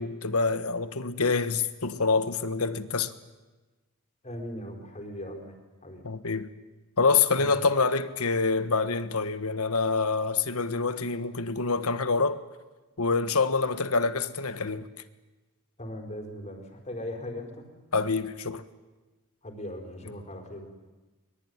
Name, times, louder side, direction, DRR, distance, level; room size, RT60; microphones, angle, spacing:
voice 1, 0.0-3.1 6.0-6.5 7.0-12.4 13.0-14.9 17.9-18.6 20.0-20.1, left 4 dB, 75° left, 1.4 m, -26 dB
voice 2, 4.2-6.0 7.4-7.5 15.8-17.7 19.4-20.7, left 1 dB, 30° left, 4.7 m, -39 dB
23.5 x 22.5 x 9.7 m
head